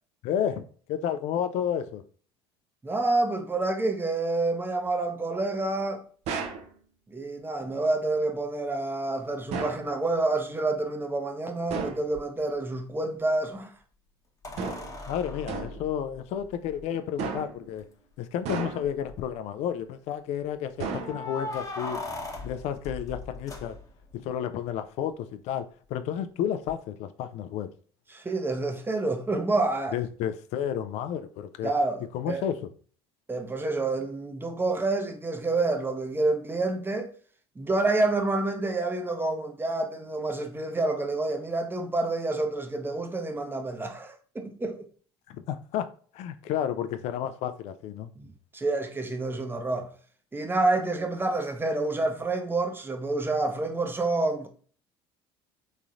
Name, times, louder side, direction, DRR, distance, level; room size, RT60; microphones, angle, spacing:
voice 1, 0.2-2.0 15.1-17.8 18.2-22.0 22.4-23.8 24.1-27.7 29.9-31.7 32.1-32.6 45.3-45.9 46.1-48.1, left 9 dB, 55° left, 0.4 m, -31 dB
voice 2, 2.8-6.0 7.1-13.7 28.1-30.0 31.6-32.4 33.3-37.1 37.6-44.9 48.2-48.3 48.5-49.9 50.3-54.5, right 2 dB, 15° right, 0.7 m, -28 dB
sound 1, 6.3-6.7 9.5-9.9 11.7-12.1 14.6-15.0 15.5-15.9 17.2-17.7 18.5-19.0 20.8-21.5, right 5 dB, 55° right, 0.6 m, -34 dB
sound 2, 12.1-12.2 14.4-16.8 17.8-17.9 18.2-18.3 18.8-19.3 21.0-24.2 26.7-26.8, left 2 dB, 25° left, 0.9 m, -39 dB
3.6 x 3.0 x 2.5 m
hypercardioid pair, 65°, 13 cm